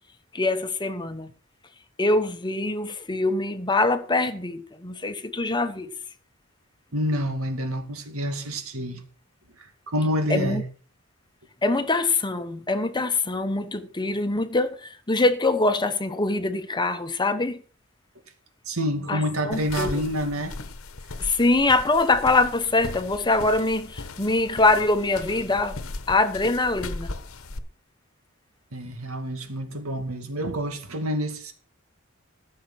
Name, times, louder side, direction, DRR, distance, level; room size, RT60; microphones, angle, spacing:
voice 1, 0.3-1.3 2.0-5.9 10.3-10.6 11.6-17.6 19.1-20.0 21.2-25.8 26.1-27.1, left 2 dB, 20° left, 1.0 m, -24 dB
voice 2, 6.9-9.0 9.6-10.6 18.7-20.5 28.7-31.5, equal, 90° right, 2.3 m, -28 dB
sound 1, 19.5-27.6, left 3 dB, 80° left, 1.2 m, -38 dB
15.0 x 6.6 x 6.2 m
head